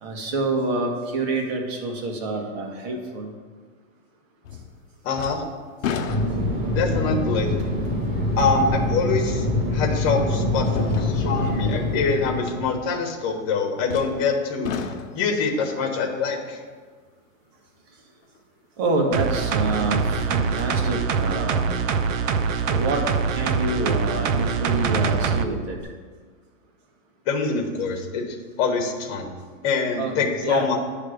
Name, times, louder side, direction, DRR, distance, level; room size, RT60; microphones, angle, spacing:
voice 1, 0.0-3.3 18.8-21.8 22.7-23.0 23.3-25.8 30.0-30.8, right 2 dB, 50° right, 1 dB, 1.8 m, -27 dB
sound 1, 4.4-4.8 5.1-6.7 7.4-7.5 9.3-9.4 10.6-11.6 13.9-14.3 14.6-15.4 18.4-18.5 19.9-20.7 21.2-21.3, left 6 dB, 90° left, 0.8 m, -32 dB
voice 2, 5.0-5.4 6.7-7.5 8.4-9.4 9.7-14.7 15.1-16.6 27.3-30.8, left 4 dB, 30° left, 3 dB, 1.2 m, -25 dB
Fixed-wing aircraft airplane, 6.1-12.7, left 1 dB, 25° right, 1.6 m, -25 dB
sound 2, 19.1-25.5 25.8-25.9, right 5 dB, 75° right, 0.8 m, -24 dB
9.4 x 3.4 x 6.5 m, 1.6 s
supercardioid pair, 155°, 39 cm